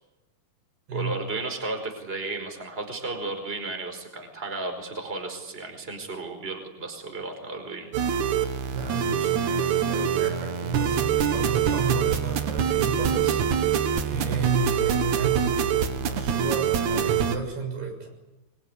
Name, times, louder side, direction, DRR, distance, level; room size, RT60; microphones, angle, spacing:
voice 1, 0.9-7.9, right 3 dB, 15° right, 4 dB, 4.7 m, -34 dB
sound 1, 7.9-17.4, right 8 dB, 60° right, 2.5 m, -25 dB
voice 2, 8.7-18.1, right 4 dB, 85° right, 2 dB, 8.6 m, -32 dB
24.5 x 24.5 x 9.8 m, 1.1 s
omnidirectional pair, 4.5 m